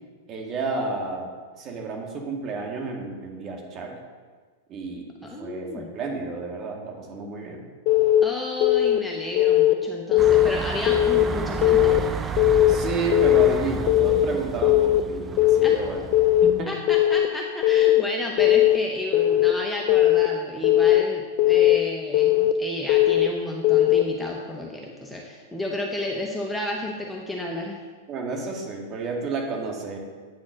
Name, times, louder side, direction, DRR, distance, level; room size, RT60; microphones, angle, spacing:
voice 1, 0.3-3.9 4.7-7.6 12.7-16.1 16.4-16.7 28.1-30.0, right 4 dB, 35° right, 1 dB, 1.9 m, -31 dB
voice 2, 5.2-5.9 8.2-12.0 15.6-15.8 16.7-27.8, left 1 dB, 5° left, -1 dB, 0.9 m, -32 dB
Keyboard (musical) / Alarm, 7.9-8.2 8.6-9.0 9.4-9.7 10.1-10.5 10.9-11.2 11.6-12.0 12.4-12.7 13.1-13.5 13.9-14.2 14.6-15.0 15.4-15.8 16.1-16.5 16.9-17.3 17.6-18.0 18.4-18.8 19.1-19.5 19.9-20.3 20.6-21.0 21.4-21.8 22.1-22.5 22.9-23.3 23.6-24.0, left 14 dB, 50° left, 0.5 m, -18 dB
sound 1, 10.2-16.6, right 4 dB, 20° right, 0.5 m, -32 dB
8.7 x 4.1 x 6.3 m, 1.5 s
hypercardioid pair, 110°, 0 cm